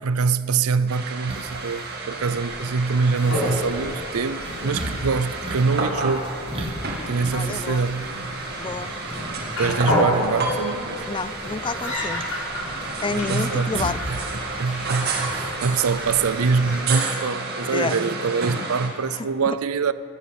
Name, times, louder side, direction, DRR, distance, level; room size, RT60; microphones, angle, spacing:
voice 1, 0.0-6.3 7.1-8.1 9.6-11.0 13.1-19.9, right 5 dB, 90° right, 0.6 m, -24 dB
sound 1, 0.9-18.9, right 3 dB, 50° right, 2.2 m, -31 dB
sound 2, 1.3-16.8, right 1 dB, 25° right, 1.5 m, -38 dB
sound 3, 2.1-16.8, left 1 dB, 80° left, 5.3 m, -31 dB
voice 2, 7.3-7.9 8.6-8.9 11.1-12.2 13.0-14.0 17.7-18.0 19.1-19.6, left 4 dB, 20° left, 0.3 m, -29 dB
17.0 x 11.5 x 7.1 m
head